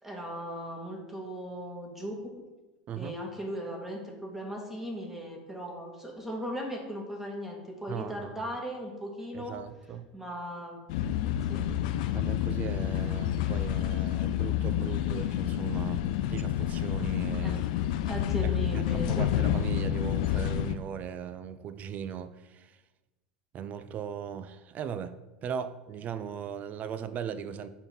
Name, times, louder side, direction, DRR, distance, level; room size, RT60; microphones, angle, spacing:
voice 1, 0.0-2.2 2.9-9.6 10.1-10.8 11.5-11.6 17.4-17.6 18.0-19.3, equal, 5° right, 1.8 m, -37 dB
voice 2, 2.9-3.2 7.9-8.6 9.3-10.1 12.1-16.0 16.3-17.6 18.4-22.8 23.5-25.1 25.4-27.7, right 8 dB, 40° right, 0.5 m, -38 dB
sound 1, 10.9-20.8, left 11 dB, 70° left, 0.4 m, -29 dB
5.5 x 4.6 x 5.4 m
hypercardioid pair, 95°, 4 cm